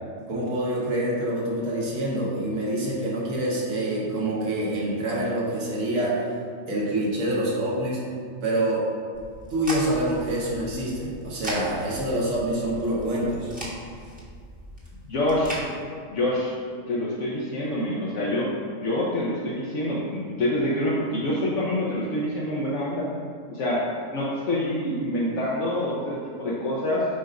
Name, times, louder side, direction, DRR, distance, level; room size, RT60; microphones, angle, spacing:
voice 1, 0.3-6.3 6.7-8.0 8.4-8.9 9.5-13.5, right 1 dB, 85° right, -5 dB, 1.6 m, -26 dB
sound 1, 9.1-15.6, right 1 dB, 5° right, 1.1 m, -38 dB
voice 2, 15.1-15.7 16.1-16.6 16.9-18.5 18.8-23.1 23.5-23.8 24.1-27.0, left 1 dB, 70° left, -6 dB, 1.1 m, -26 dB
7.5 x 2.5 x 5.1 m, 2.2 s
omnidirectional pair, 1.3 m